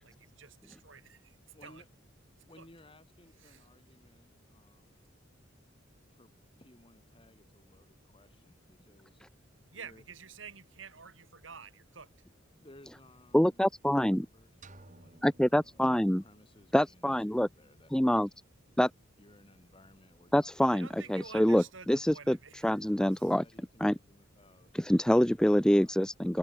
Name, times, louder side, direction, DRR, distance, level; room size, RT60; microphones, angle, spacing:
voice 1, 0.0-1.4 1.6-1.8 2.6-2.7 3.4-3.6 9.7-12.1 20.7-22.8 23.1-23.3, right 6 dB, 70° right, 3.0 m, -50 dB
voice 2, 1.5-1.9 2.4-5.1 6.1-6.3 6.6-9.2 9.7-10.0 12.6-13.6 13.9-15.2 15.5-18.4 19.2-20.5 20.9-21.7 23.3-24.7 25.3-26.0, left 1 dB, 25° left, 6.3 m, -60 dB
voice 3, 13.3-14.3 15.2-16.2 16.7-17.5 17.9-18.3 18.8-18.9 20.3-23.4 23.8-23.9 24.7-26.4, equal, 5° left, 0.5 m, -26 dB
sound 1, 14.6-16.6, right 2 dB, 40° right, 3.0 m, -57 dB
head